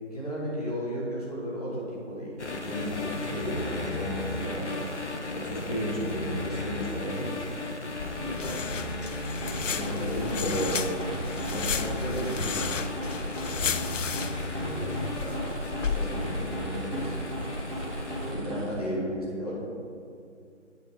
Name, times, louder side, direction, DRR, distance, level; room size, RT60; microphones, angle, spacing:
voice 1, 0.1-4.9 5.3-7.4 9.6-10.8 11.4-12.7 15.9-17.2 18.3-19.6, equal, 30° left, -6 dB, 1.5 m, -34 dB
sound 1, 2.4-18.3, left 2 dB, 65° left, 1.0 m, -36 dB
sound 2, 8.0-16.5, left 6 dB, 80° left, 0.5 m, -33 dB
voice 2, 8.1-8.7 14.3-15.5 18.1-18.6, equal, 5° right, -21 dB, 1.0 m, -39 dB
sound 3, 9.1-19.0, right 1 dB, 40° right, 1.4 m, -36 dB
8.1 x 4.6 x 4.6 m, 2.5 s
figure-of-eight pair, 165°, 37 cm